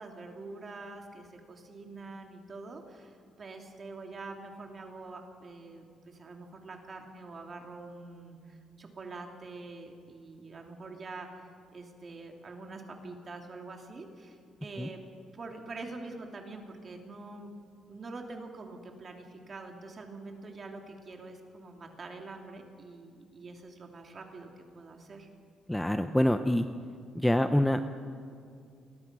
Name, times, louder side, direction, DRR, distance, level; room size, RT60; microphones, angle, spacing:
voice 1, 0.0-15.0 15.3-17.5 17.9-25.3, right 3 dB, 30° right, 3 dB, 3.0 m, -45 dB
voice 2, 25.7-26.7 27.1-27.8, left 1 dB, 5° left, 8 dB, 0.7 m, -25 dB
29.0 x 22.0 x 6.2 m, 2.3 s
cardioid pair, 160°, 0 cm